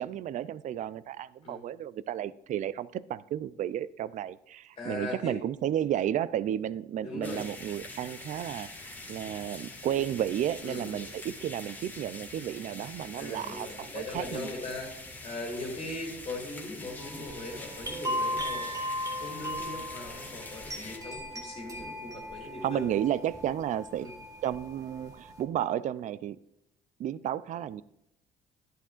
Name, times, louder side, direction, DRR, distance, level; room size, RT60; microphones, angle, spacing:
voice 1, 0.0-14.5 22.6-24.1 24.4-26.4 27.0-27.8, right 11 dB, 50° right, 18 dB, 0.4 m, -32 dB
voice 2, 4.8-5.3 7.0-7.4 10.6-11.1 13.2-15.0 15.2-18.7 19.1-23.0 24.0-24.1, left 2 dB, 35° left, -3 dB, 2.5 m, -39 dB
sound 1, 7.2-21.0, left 2 dB, 10° left, 1.7 m, -45 dB
sound 2, 17.0-25.4, equal, 20° right, 2.0 m, -37 dB
11.0 x 11.0 x 2.5 m, 0.81 s
cardioid pair, 110°, 17 cm